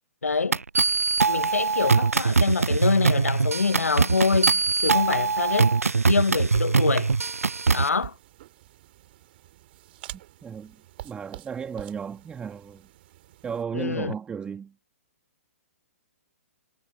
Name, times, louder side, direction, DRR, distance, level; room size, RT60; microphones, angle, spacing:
voice 1, 0.2-0.6 1.3-5.8 6.1-7.1 7.7-8.1 13.7-14.1, left 4 dB, 85° left, 0.3 m, -25 dB
sound 1, 0.5-7.9, right 4 dB, 80° right, 0.5 m, -22 dB
sound 2, 4.2-13.6, right 15 dB, 45° right, 2.8 m, -47 dB
voice 2, 10.4-10.8 11.0-12.9 13.4-14.8, right 7 dB, 15° right, 2.0 m, -34 dB
figure-of-eight pair, 120°, 8 cm